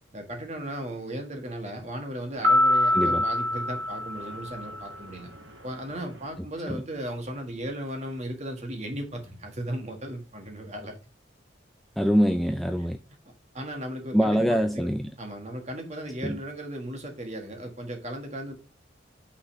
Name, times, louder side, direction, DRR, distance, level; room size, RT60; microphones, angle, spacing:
voice 1, 0.1-5.3 5.6-11.0 13.5-14.9 15.2-18.6, right 1 dB, 35° right, 1.5 m, -36 dB
sound 1, 2.4-5.0, left 1 dB, 75° right, 1.3 m, -24 dB
voice 2, 12.0-13.0 14.1-15.0 16.2-16.4, equal, ahead, 0.3 m, -24 dB
5.9 x 4.0 x 5.2 m
head